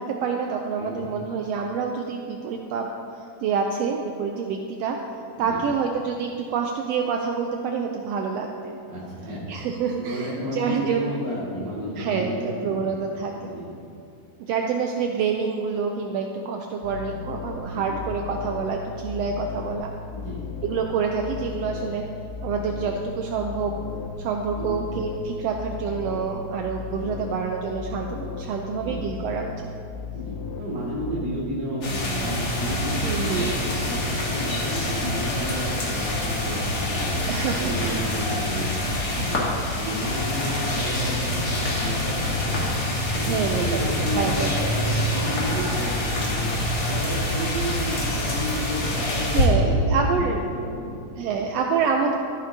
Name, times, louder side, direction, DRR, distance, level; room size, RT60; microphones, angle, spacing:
voice 1, 0.0-2.9 3.4-5.0 5.4-8.8 9.5-11.1 11.9-13.5 14.4-19.9 20.6-22.0 22.4-23.8 24.2-29.5 33.0-33.6 37.3-37.7 43.2-43.7 44.0-44.7 49.3-50.4 51.2-52.2, right 5 dB, 85° right, 2 dB, 1.4 m, -27 dB
voice 2, 8.9-9.4 10.0-12.8 13.4-13.7 17.7-18.0 20.1-20.4 24.5-24.8 28.7-29.1 30.1-37.2 37.6-38.7 39.0-39.4 39.7-42.7 43.1-46.5 46.8-51.3, equal, 60° right, -10 dB, 3.2 m, -32 dB
sound 1, 16.8-31.2, left 5 dB, 75° left, 1.9 m, -36 dB
sound 2, 31.8-49.5, left 1 dB, 40° left, 1.7 m, -26 dB
13.5 x 9.5 x 2.8 m, 2.6 s
omnidirectional pair, 3.5 m